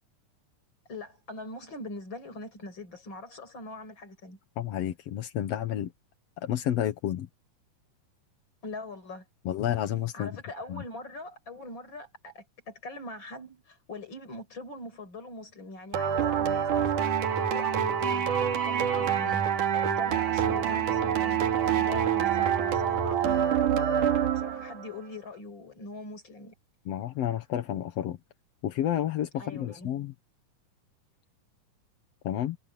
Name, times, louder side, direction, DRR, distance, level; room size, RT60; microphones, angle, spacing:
voice 1, 0.9-4.4 8.6-9.3 10.1-18.3 18.6-19.4 19.7-26.5 29.3-29.9, left 2 dB, 35° left, 5.8 m, -42 dB
voice 2, 4.6-5.9 6.4-7.3 9.5-10.4 10.7-10.8 26.9-28.2 28.6-30.1 32.2-32.6, left 11 dB, 60° left, 1.9 m, -30 dB
sound 1, 15.9-24.8, right 9 dB, 70° right, 3.5 m, -26 dB
omnidirectional pair, 3.8 m